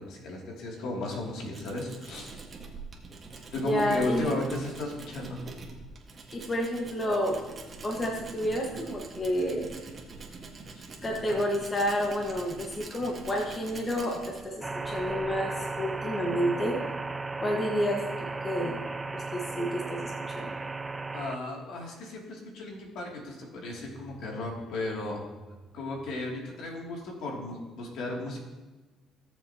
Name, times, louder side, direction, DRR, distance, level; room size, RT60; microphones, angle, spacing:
voice 1, 0.0-2.3 3.5-5.4 10.7-10.8 11.3-11.4 21.1-25.2 25.7-28.4, left 2 dB, 75° left, -1 dB, 2.6 m, -35 dB
Tools, 0.8-16.2, right 3 dB, 35° right, 1.6 m, -45 dB
voice 2, 3.6-4.4 6.3-7.4 7.8-9.7 11.0-16.8 17.4-18.0 18.4-18.9 19.1-20.5, equal, 25° left, 0 dB, 1.5 m, -30 dB
sound 1, 14.6-21.4, right 3 dB, 15° right, 0.5 m, -35 dB
17.0 x 6.8 x 2.9 m, 1.2 s
cardioid pair, 110°, 0 cm